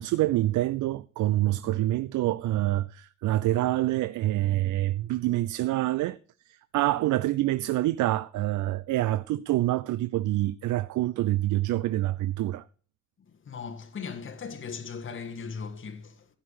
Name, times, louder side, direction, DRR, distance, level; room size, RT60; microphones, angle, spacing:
voice 1, 0.0-6.2 6.5-12.6, right 16 dB, 80° right, 0.6 m, -26 dB
voice 2, 13.3-16.3, left 5 dB, 40° left, 1.8 m, -38 dB
15.5 x 5.8 x 6.4 m
cardioid pair, 90°, 30 cm